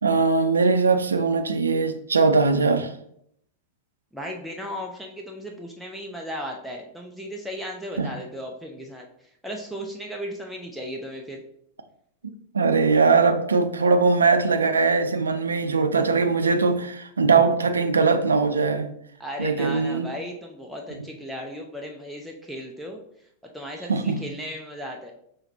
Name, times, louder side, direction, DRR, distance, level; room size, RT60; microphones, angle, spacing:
voice 1, 0.0-2.9 8.0-8.1 12.2-18.9 19.4-20.1 23.9-24.2, right 4 dB, 75° right, 8 dB, 0.4 m, -21 dB
voice 2, 4.1-11.4 19.2-23.0 23.5-25.1, equal, ahead, -1 dB, 0.5 m, -36 dB
5.7 x 3.1 x 2.7 m, 0.72 s
figure-of-eight pair, 90°, 0 cm